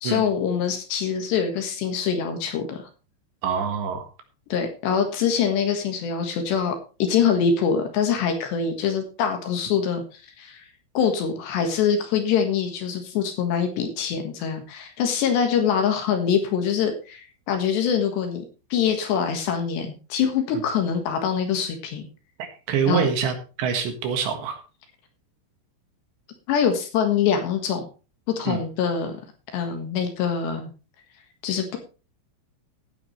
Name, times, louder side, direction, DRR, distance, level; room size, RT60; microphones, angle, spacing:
voice 1, 0.0-2.9 4.5-10.7 11.0-18.5 18.7-22.1 22.9-23.1 26.5-27.9 28.4-29.2 29.5-30.7 31.4-31.8, left 7 dB, 65° left, 5 dB, 3.5 m, -24 dB
voice 2, 3.4-4.0 22.7-24.6 28.5-28.6, right 7 dB, 65° right, 7 dB, 3.5 m, -25 dB
16.0 x 9.8 x 3.2 m, 0.33 s
omnidirectional pair, 5.9 m